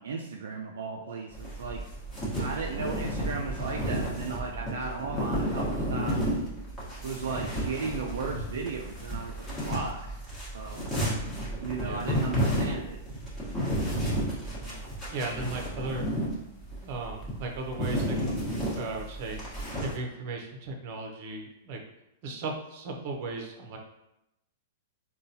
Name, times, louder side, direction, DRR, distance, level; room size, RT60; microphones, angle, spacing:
voice 1, 0.0-1.8 2.4-6.4 7.0-10.1 10.5-10.8 11.6-13.0, right 4 dB, 80° right, 0 dB, 0.4 m, -35 dB
sound 1, 1.3-20.0, equal, 15° left, 1.2 m, -32 dB
voice 2, 15.1-16.1 16.8-18.2 18.7-19.4 19.8-21.8 22.2-23.8, right 3 dB, 50° right, 2 dB, 0.7 m, -36 dB
3.7 x 2.3 x 2.7 m, 0.87 s
hypercardioid pair, 120°, 0 cm